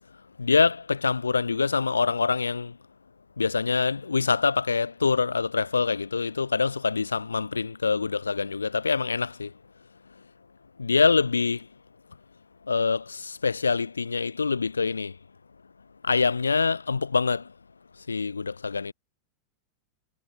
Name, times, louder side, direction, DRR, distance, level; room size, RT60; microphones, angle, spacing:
voice 1, 0.4-2.8 3.4-9.5 10.8-11.7 12.7-15.2 16.0-17.5 18.1-18.9, left 4 dB, 85° left, 4.4 m, -25 dB
figure-of-eight pair, 90°, 0 cm